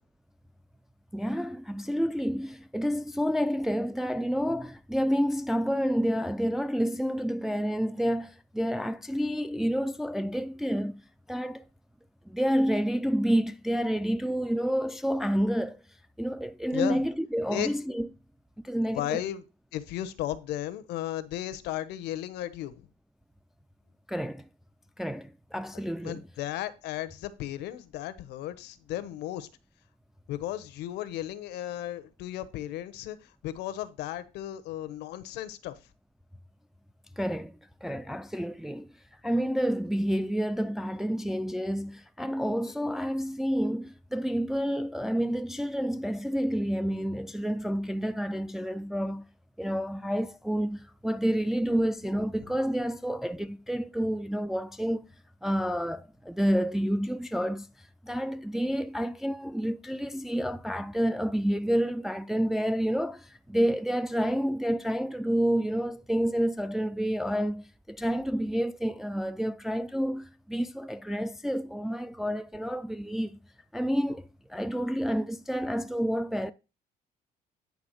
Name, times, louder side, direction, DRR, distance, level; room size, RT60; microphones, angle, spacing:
voice 1, 1.1-11.0 11.3-11.6 12.3-15.8 16.2-18.1 18.6-19.2 24.1-24.4 25.0-26.2 37.2-37.5 37.8-38.9 39.2-49.2 49.6-55.1 55.4-57.7 58.0-73.4 73.7-76.5, equal, ahead, 0.4 m, -29 dB
voice 2, 18.9-19.4 19.7-22.9 26.0-29.5 30.3-35.7 52.4-52.5, left 13 dB, 85° left, 1.0 m, -35 dB
9.6 x 3.4 x 6.5 m
cardioid pair, 110°, 17 cm